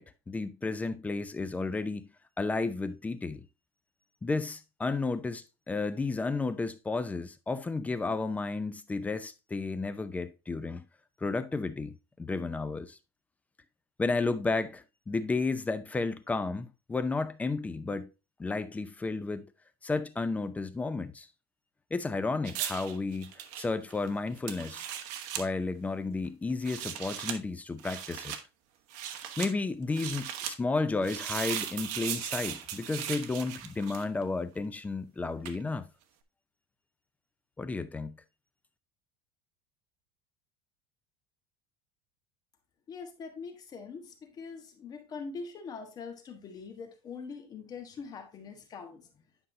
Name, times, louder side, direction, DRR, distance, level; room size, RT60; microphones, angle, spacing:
voice 1, 0.0-2.1 2.4-3.5 4.2-10.9 11.2-11.9 12.2-13.0 14.0-18.1 18.4-19.5 19.8-21.3 21.9-24.9 25.4-28.3 29.4-35.9 37.6-38.2, left 3 dB, 10° left, 0.5 m, -32 dB
sound 1, 22.4-25.5 26.5-27.4 27.8-28.4 28.9-29.5 29.9-30.5 31.0-34.2 35.4-35.6, right 10 dB, 65° right, 1.3 m, -37 dB
voice 2, 42.9-49.1, left 5 dB, 30° left, 1.4 m, -43 dB
10.0 x 5.5 x 2.7 m
cardioid pair, 150°, 14 cm